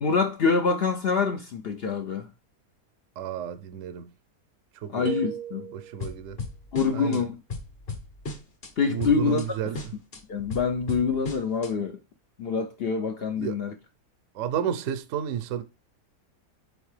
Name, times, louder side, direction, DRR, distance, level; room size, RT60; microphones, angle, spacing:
voice 1, 0.0-2.3 4.9-5.7 6.7-7.4 8.8-9.6 10.3-12.0 12.4-13.7, left 5 dB, 60° left, 0.6 m, -26 dB
voice 2, 3.2-4.1 4.7-5.1 5.7-6.4 6.9-7.3 8.9-9.8 13.4-13.6 14.3-15.6, right 9 dB, 65° right, 0.9 m, -31 dB
sound 1, 5.1-6.2, right 9 dB, 85° right, 1.2 m, -36 dB
sound 2, 6.0-7.2 7.5-8.7 9.0-9.5 9.7-11.7, left 3 dB, 40° left, 1.2 m, -36 dB
6.5 x 4.4 x 3.2 m
omnidirectional pair, 1.6 m